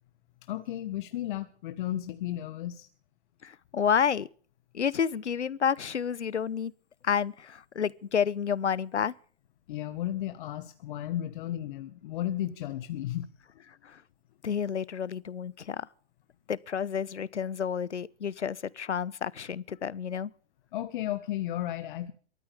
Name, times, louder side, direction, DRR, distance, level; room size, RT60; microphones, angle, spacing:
voice 1, 0.4-2.9 9.7-13.6 20.7-22.1, left 13 dB, 45° left, 1.6 m, -34 dB
voice 2, 3.4-4.3 4.7-6.7 7.0-9.1 13.8-14.0 14.4-15.9 16.5-20.3, left 7 dB, 90° left, 1.0 m, -30 dB
23.0 x 14.0 x 3.6 m
hypercardioid pair, 135°, 34 cm